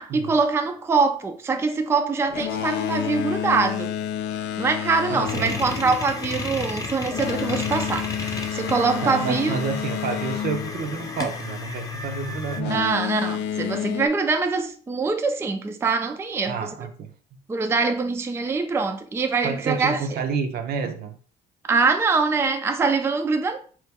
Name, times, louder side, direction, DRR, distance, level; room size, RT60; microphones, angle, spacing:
voice 1, 0.0-3.9 4.6-8.1 8.5-9.6 12.7-16.7 17.5-20.2 21.7-23.6, right 4 dB, 15° right, 0.4 m, -23 dB
Boat Water vehicle, 2.2-11.7 12.5-14.1, left 10 dB, 70° left, 0.5 m, -30 dB
voice 2, 5.1-5.6 9.0-12.9 16.5-17.1 19.4-21.2, right 5 dB, 60° right, 0.6 m, -29 dB
sound 1, 5.2-12.6, left 3 dB, 20° left, 0.7 m, -33 dB
3.9 x 3.1 x 3.4 m
cardioid pair, 115°, 18 cm